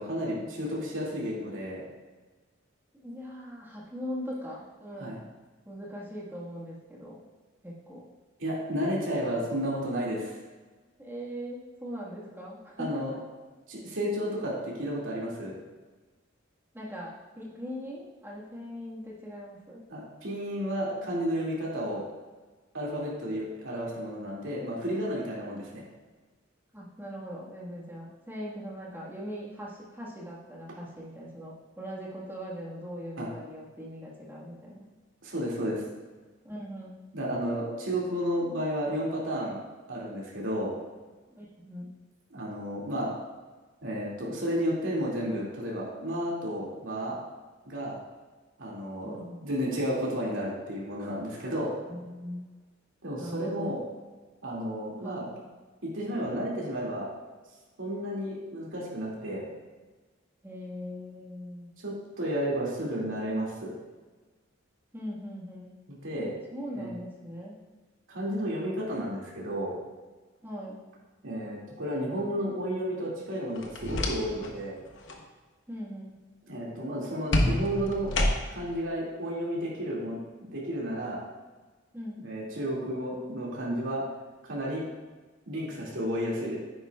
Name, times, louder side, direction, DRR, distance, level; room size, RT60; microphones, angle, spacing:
voice 1, 0.0-1.8 5.0-5.2 8.4-10.3 12.8-13.1 13.7-15.6 19.9-22.0 22.7-25.8 33.2-33.3 35.2-35.8 37.1-39.6 39.9-40.7 42.3-43.1 43.8-47.2 47.7-48.0 48.6-51.7 53.0-53.8 54.4-55.3 55.8-57.1 57.8-59.5 61.8-63.7 65.9-66.3 66.7-66.9 68.1-69.8 71.2-74.8 76.5-78.1 78.5-81.2 82.2-84.0 84.4-84.9 85.5-86.6, equal, 70° right, -5 dB, 2.5 m, -32 dB
voice 2, 3.0-5.1 5.6-7.2 7.6-8.1 11.0-13.0 16.7-19.8 26.7-34.9 36.4-37.0 41.3-41.9 49.0-49.4 51.9-52.4 53.1-53.8 55.0-55.3 60.4-61.7 64.9-65.8 66.5-67.6 70.4-70.8 75.7-76.2 81.9-82.2, equal, 10° right, -5 dB, 1.7 m, -40 dB
sound 1, 73.6-74.6 74.9-75.2 77.3-78.7, left 1 dB, 65° left, 1.1 m, -28 dB
9.9 x 9.4 x 2.4 m, 1.3 s
head